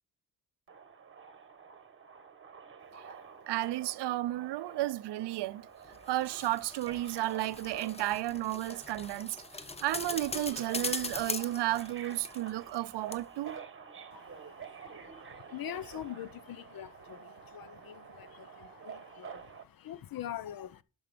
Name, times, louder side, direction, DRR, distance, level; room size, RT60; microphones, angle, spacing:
Subway metro underground, 0.7-19.6, right 6 dB, 30° right, 1.2 m, -49 dB
voice 1, 3.5-5.7 6.1-13.6, right 16 dB, 80° right, 0.5 m, -33 dB
sound 1, 5.8-12.8 13.1-13.2, left 3 dB, 15° left, 0.5 m, -41 dB
voice 2, 14.1-20.8, left 11 dB, 60° left, 0.7 m, -44 dB
12.0 x 5.5 x 5.0 m
wide cardioid pair, 140°, 40 cm